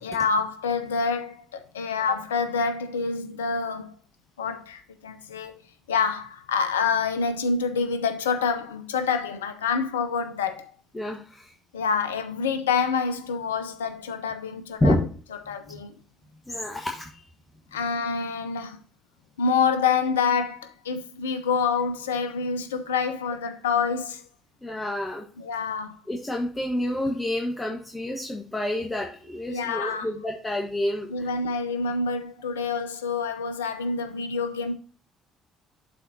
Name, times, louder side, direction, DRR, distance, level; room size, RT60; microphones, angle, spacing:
voice 1, 0.0-3.9 4.4-5.6 5.9-10.7 11.7-15.0 15.5-15.9 17.7-18.8 19.4-24.2 25.4-26.0 29.5-30.1 31.1-34.7, left 5 dB, 85° left, 0.6 m, -27 dB
voice 2, 10.9-11.5 14.8-15.0 16.5-17.2 24.6-25.3 26.1-31.3, left 1 dB, 20° left, 1.3 m, -28 dB
12.0 x 4.2 x 2.7 m
hypercardioid pair, 50°, 0 cm